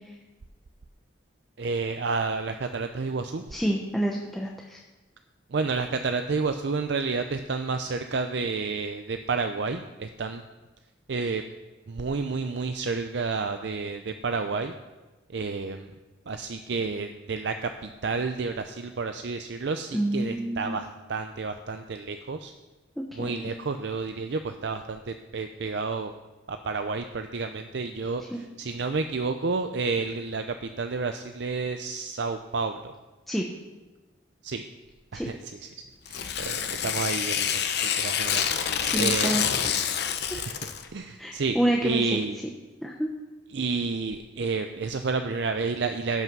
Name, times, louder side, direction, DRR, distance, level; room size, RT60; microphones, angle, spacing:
voice 1, 1.6-3.4 5.5-10.4 11.1-11.4 11.9-14.8 15.3-15.9 16.3-22.5 23.1-26.1 26.5-32.9 34.4-34.6 35.1-35.7 36.1-38.5 39.0-39.3 40.3-42.4 43.5-46.2, right 4 dB, 60° right, 7 dB, 0.5 m, -30 dB
voice 2, 3.5-4.8 19.9-20.8 23.2-23.5 28.3-28.4 33.3-33.4 35.1-35.3 38.8-39.5 41.2-42.2 42.8-43.1, right 1 dB, ahead, -2 dB, 0.8 m, -28 dB
Tearing, 36.1-40.9, left 8 dB, 55° left, 0.8 m, -27 dB
16.0 x 5.8 x 6.1 m, 1.2 s
head